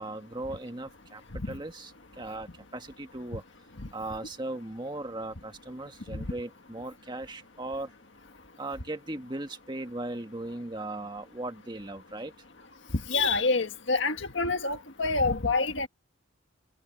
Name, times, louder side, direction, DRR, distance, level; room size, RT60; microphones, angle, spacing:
voice 1, 0.0-3.4 3.9-7.9 8.6-12.3, right 2 dB, 20° right, 1.7 m, -38 dB
voice 2, 13.1-15.9, left 3 dB, 60° left, 1.8 m, -27 dB
head